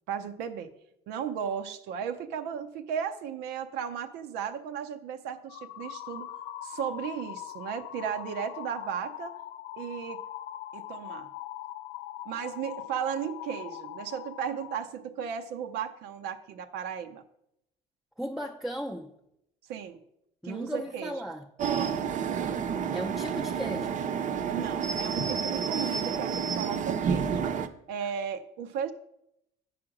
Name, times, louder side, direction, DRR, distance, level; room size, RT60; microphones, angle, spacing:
voice 1, 0.1-0.7 1.1-6.3 6.6-9.3 9.8-10.2 10.7-11.3 12.3-17.2 19.7-20.0 20.4-21.1 22.3-22.6 24.5-27.5 27.9-28.9, right 8 dB, 90° right, 0.6 m, -35 dB
sound 1, 5.5-14.8, left 12 dB, 80° left, 0.4 m, -41 dB
voice 2, 18.2-19.1 20.4-21.5 22.9-24.0 28.0-28.1, equal, ahead, 0.5 m, -36 dB
sound 2, 21.6-27.7, right 7 dB, 50° right, 0.7 m, -30 dB
8.6 x 5.0 x 5.9 m
cardioid pair, 110°, 17 cm